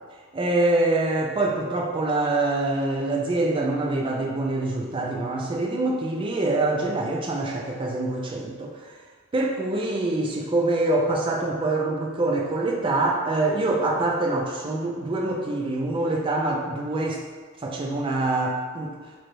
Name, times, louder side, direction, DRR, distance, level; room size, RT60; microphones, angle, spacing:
voice 1, 0.3-9.0 9.3-17.2 17.6-19.0, right 2 dB, 25° right, -1 dB, 0.3 m, -25 dB
4.5 x 2.1 x 2.6 m, 1.5 s
head